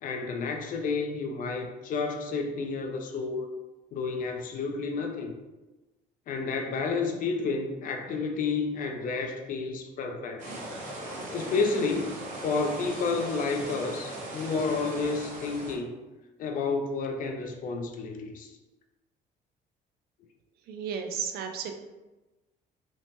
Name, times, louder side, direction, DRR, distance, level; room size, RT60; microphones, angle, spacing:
voice 1, 0.0-3.6 3.9-5.3 6.3-10.4 11.3-15.9 16.4-18.5, left 4 dB, 55° left, 4 dB, 0.4 m, -30 dB
sound 1, 10.4-15.7, right 1 dB, 45° right, 0.9 m, -39 dB
voice 2, 20.7-21.7, right 7 dB, 65° right, 5 dB, 0.4 m, -33 dB
3.0 x 2.1 x 2.8 m, 1.1 s
cardioid pair, 110°, 17 cm